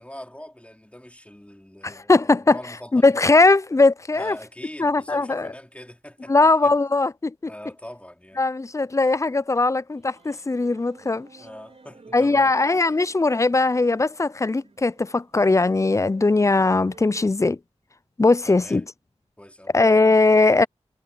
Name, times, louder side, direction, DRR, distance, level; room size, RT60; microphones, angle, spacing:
voice 1, 0.0-3.3 4.1-6.7 7.4-8.4 11.4-12.6 18.5-18.8 19.4-19.7, left 1 dB, 10° left, 3.7 m, -42 dB
voice 2, 1.8-2.6 2.9-4.4 4.8-5.5 6.3-7.5 8.4-11.3 12.1-17.6 18.2-18.8 19.7-20.7, left 3 dB, 25° left, 0.5 m, -19 dB
sound 1, 9.9-17.3, right 3 dB, 60° right, 4.4 m, -51 dB
cardioid pair, 40°, 12 cm